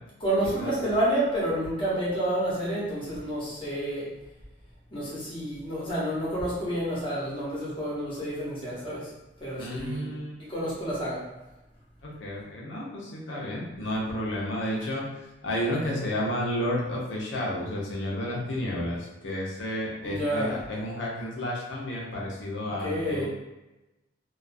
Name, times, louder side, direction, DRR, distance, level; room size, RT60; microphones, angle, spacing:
voice 1, 0.2-4.1 4.9-9.1 9.4-10.1 10.5-11.2 20.0-20.5 22.8-23.3, right 1 dB, 30° left, -8 dB, 0.8 m, -29 dB
voice 2, 9.6-10.4 12.0-15.1 15.4-23.3, left 1 dB, 85° left, -3 dB, 0.7 m, -31 dB
2.4 x 2.3 x 2.5 m, 0.99 s
head